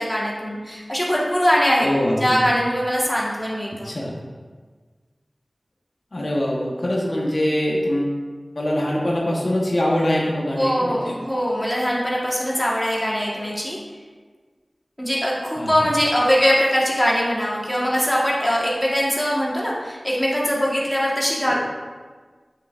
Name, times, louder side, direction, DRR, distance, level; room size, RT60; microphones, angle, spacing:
voice 1, 0.0-1.9 2.2-3.9 10.5-13.8 15.0-21.5, equal, 10° left, -4 dB, 1.5 m, -22 dB
voice 2, 1.8-2.4 3.8-4.1 6.1-8.1 8.5-11.2 15.6-15.7, left 1 dB, 65° left, -3 dB, 1.1 m, -23 dB
7.6 x 6.6 x 2.5 m, 1.5 s
wide cardioid pair, 55°, 0 cm